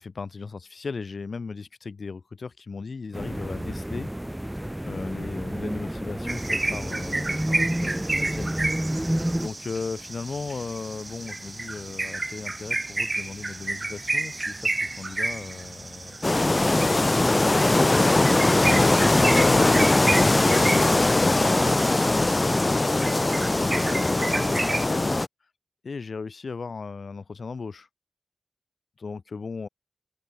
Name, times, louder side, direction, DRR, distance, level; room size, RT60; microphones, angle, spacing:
voice 1, 0.0-4.1 4.8-8.5 9.4-17.6 18.4-25.2 25.8-27.9 29.0-29.7, left 4 dB, 75° left, 7.6 m, -37 dB
sound 1, 3.1-9.5, right 1 dB, 10° right, 0.8 m, -30 dB
sound 2, 6.3-24.9, right 2 dB, 35° right, 0.5 m, -31 dB
sound 3, 16.2-25.3, left 2 dB, 30° left, 0.4 m, -20 dB
wide cardioid pair, 70°, 0 cm